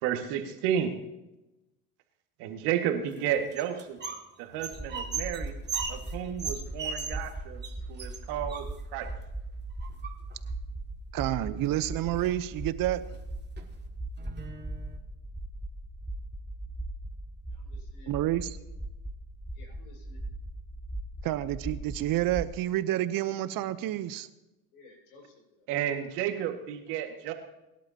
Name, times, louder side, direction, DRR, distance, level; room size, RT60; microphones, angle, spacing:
voice 1, 0.0-0.9 2.4-4.0 4.4-5.6 5.9-7.6 7.9-9.1 25.7-27.3, right 9 dB, 70° right, 5 dB, 2.0 m, -32 dB
sound 1, 3.1-4.3 4.5-7.3 7.6-7.7 8.0-9.1 9.8-10.5 11.6-11.7 12.0-12.5 13.0-13.2 13.6-13.7 14.2-15.0, right 5 dB, 25° right, 2.1 m, -38 dB
sound 2, 4.7-22.6, right 1 dB, ahead, 0.9 m, -39 dB
voice 2, 11.1-13.0 18.1-18.6 21.2-24.3, right 14 dB, 55° right, 14 dB, 0.9 m, -29 dB
voice 3, 17.5-18.1 19.5-20.2 24.7-25.7, left 2 dB, 85° left, 1 dB, 5.6 m, -56 dB
23.0 x 11.5 x 2.9 m, 0.98 s
supercardioid pair, 85°, 42 cm